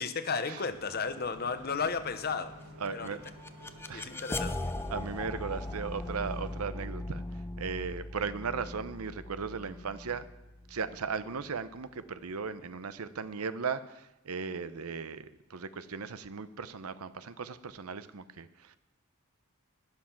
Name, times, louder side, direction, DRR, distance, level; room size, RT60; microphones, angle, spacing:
voice 1, 0.0-2.5 2.9-3.2 3.8-4.7, left 5 dB, 45° left, 11 dB, 0.8 m, -34 dB
Bus, 0.7-6.6, equal, 55° right, 4.4 m, -51 dB
sound 1, 2.8-11.8, left 2 dB, 10° left, 0.4 m, -40 dB
voice 2, 2.8-3.2 3.9-4.2 4.9-7.2 7.6-10.3 10.7-18.8, right 5 dB, 85° right, 13 dB, 0.8 m, -37 dB
12.5 x 10.5 x 5.9 m, 0.93 s
head